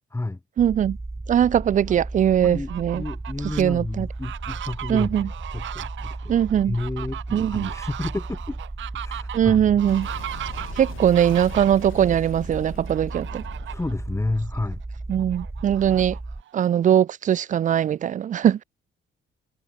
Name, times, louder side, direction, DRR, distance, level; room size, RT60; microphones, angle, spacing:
sound 1, 0.6-16.4, right 2 dB, 15° right, 1.5 m, -35 dB
voice 1, 0.6-1.0 1.3-3.0 3.6-4.1 4.9-5.3 6.3-6.8 7.3-7.7 9.3-10.1 10.8-13.4 15.1-16.2 16.5-18.6, right 9 dB, 40° right, 0.4 m, -21 dB
voice 2, 2.4-6.4 6.7-8.6 9.0-9.7 13.6-14.8, left 2 dB, 15° left, 2.0 m, -31 dB
Fowl, 2.5-3.6 4.1-11.9 12.9-13.9 14.4-14.5 14.8-16.6, right 12 dB, 75° right, 1.6 m, -38 dB
Boom, 9.9-15.1, left 14 dB, 85° left, 3.0 m, -44 dB
cardioid pair, 90°, 20 cm